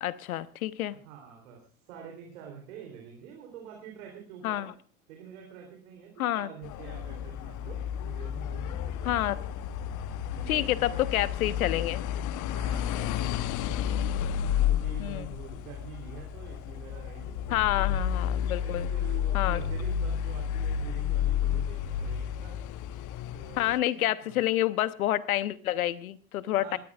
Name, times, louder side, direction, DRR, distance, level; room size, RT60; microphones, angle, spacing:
voice 1, 0.0-1.0 4.4-4.7 6.2-6.5 9.0-9.4 10.5-12.0 15.0-15.3 17.5-18.9 19.3-19.6 23.6-26.8, left 13 dB, 70° left, 17 dB, 1.0 m, -28 dB
voice 2, 0.9-4.7 5.1-9.4 10.3-11.1 12.5-14.0 14.7-18.0 18.6-22.6 23.3-23.7 23.9-24.4 26.6-26.8, right 8 dB, 65° right, 1 dB, 3.4 m, -46 dB
sound 1, 6.6-23.8, left 9 dB, 45° left, 0.9 m, -31 dB
27.0 x 13.5 x 2.4 m, 0.40 s
figure-of-eight pair, 75°, 44 cm